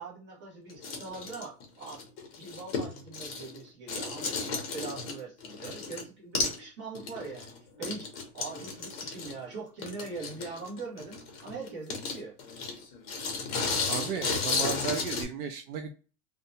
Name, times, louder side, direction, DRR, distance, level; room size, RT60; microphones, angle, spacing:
voice 1, 0.0-2.1 2.4-12.4, right 4 dB, 25° right, -5 dB, 1.0 m, -42 dB
sound 1, 0.7-3.6 3.9-6.0 6.3-6.6 6.9-15.2, left 4 dB, 40° left, 0.7 m, -34 dB
voice 2, 13.9-15.9, right 7 dB, 65° right, 5 dB, 0.5 m, -35 dB
2.7 x 2.2 x 2.5 m, 0.36 s
supercardioid pair, 170°, 48 cm